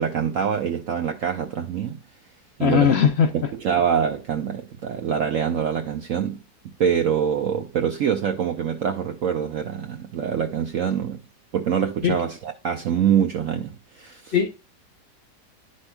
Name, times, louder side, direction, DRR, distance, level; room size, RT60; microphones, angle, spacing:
voice 1, 0.0-2.0 2.6-2.9 3.3-6.4 6.8-11.2 11.5-14.5, right 8 dB, 60° right, 0.9 m, -25 dB
voice 2, 2.6-3.3 12.0-12.1 14.3-14.5, left 7 dB, 55° left, 0.7 m, -18 dB
10.0 x 5.3 x 2.2 m
omnidirectional pair, 1.8 m